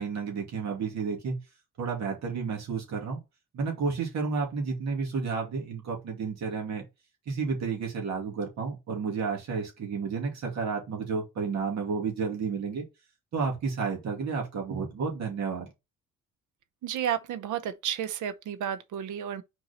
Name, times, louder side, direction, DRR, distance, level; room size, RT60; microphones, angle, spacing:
voice 1, 0.0-1.4 1.8-3.2 3.5-6.8 7.3-12.8 13.3-15.7, right 5 dB, 65° right, 2.4 m, -31 dB
voice 2, 16.8-19.4, right 9 dB, 80° right, 0.8 m, -32 dB
4.6 x 4.2 x 5.1 m
cardioid pair, 90°, 30 cm